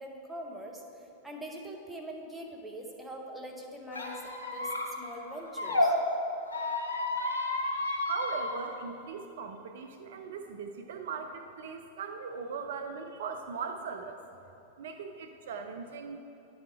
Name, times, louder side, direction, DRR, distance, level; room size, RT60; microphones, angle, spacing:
voice 1, 0.0-5.9, right 1 dB, 5° right, -1 dB, 1.0 m, -43 dB
Squeak, 3.9-5.9 6.4-8.6, left 2 dB, 75° left, 0.9 m, -32 dB
voice 2, 8.0-14.2 14.8-16.2, right 5 dB, 60° right, 6 dB, 0.4 m, -39 dB
10.0 x 4.2 x 4.6 m, 2.9 s
figure-of-eight pair, 90°, 0 cm